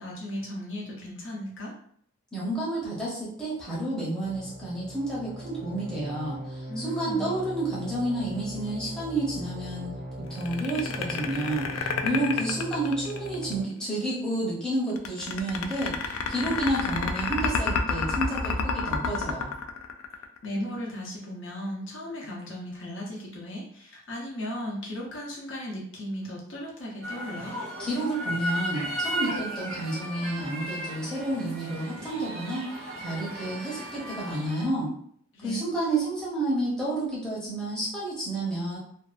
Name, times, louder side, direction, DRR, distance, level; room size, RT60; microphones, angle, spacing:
voice 1, 0.0-1.7 6.7-7.3 20.4-27.5 35.3-35.6, equal, 65° left, -3 dB, 0.7 m, -36 dB
voice 2, 2.3-19.5 27.8-34.9 35.4-38.8, right 1 dB, 5° left, -8 dB, 0.7 m, -30 dB
sound 1, 4.2-13.6, right 1 dB, 45° right, 0.4 m, -39 dB
sound 2, 10.4-13.5 15.0-20.5, left 5 dB, 90° left, 0.3 m, -29 dB
sound 3, 27.0-34.6, right 1 dB, 85° right, 1.0 m, -35 dB
2.6 x 2.3 x 2.4 m, 0.64 s
head